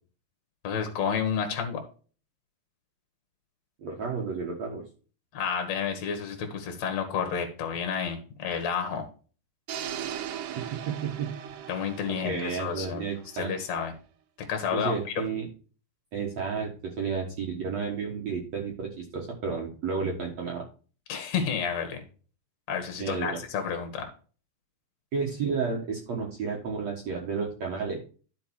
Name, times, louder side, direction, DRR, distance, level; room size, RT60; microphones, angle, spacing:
voice 1, 0.6-1.8 5.3-9.1 11.7-13.0 13.3-13.9 14.5-15.2 21.1-22.0 22.7-24.1, left 7 dB, 65° left, 5 dB, 1.8 m, -30 dB
voice 2, 3.8-4.8 10.6-11.6 12.2-13.5 14.7-15.5 16.1-20.6 23.0-23.4 25.1-28.0, right 5 dB, 60° right, 0 dB, 1.7 m, -32 dB
sound 1, 9.7-13.7, right 10 dB, 85° right, 1.9 m, -39 dB
11.5 x 5.0 x 4.6 m, 0.38 s
omnidirectional pair, 5.1 m